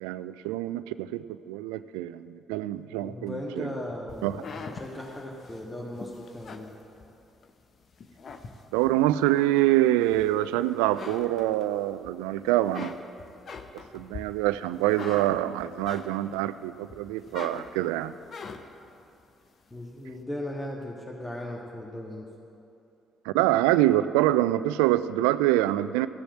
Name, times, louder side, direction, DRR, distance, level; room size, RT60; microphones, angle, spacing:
voice 1, 0.0-3.7 4.2-4.4 8.7-13.0 13.7-18.1 23.3-26.1, right 15 dB, 75° right, 15 dB, 0.3 m, -25 dB
voice 2, 3.0-6.7 19.7-22.3, left 1 dB, 20° left, -2 dB, 1.7 m, -37 dB
sound 1, 4.1-7.5 7.9-9.0 9.5-10.5 10.8-12.1 12.4-16.5 16.9-18.9, left 5 dB, 50° left, 0.9 m, -42 dB
13.5 x 7.1 x 7.8 m, 2.7 s
hypercardioid pair, 45°, 0 cm